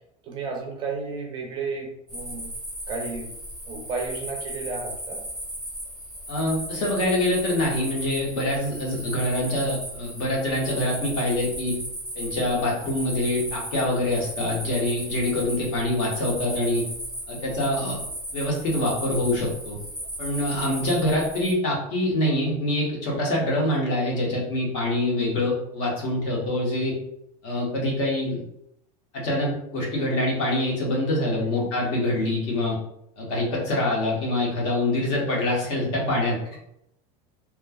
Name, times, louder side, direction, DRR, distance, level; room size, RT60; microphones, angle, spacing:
voice 1, 0.2-2.5 2.9-3.3 3.7-5.2 31.2-31.5, right 4 dB, 25° right, 1 dB, 0.4 m, -33 dB
sound 1, 2.1-21.5, right 1 dB, 5° left, 0.8 m, -36 dB
voice 2, 6.3-11.8 12.1-16.9 17.3-18.0 18.3-19.8 20.2-26.9 27.4-28.4 29.1-32.8 33.2-36.6, left 1 dB, 65° left, -3 dB, 1.1 m, -25 dB
3.1 x 2.2 x 2.2 m, 0.78 s
supercardioid pair, 165°, 18 cm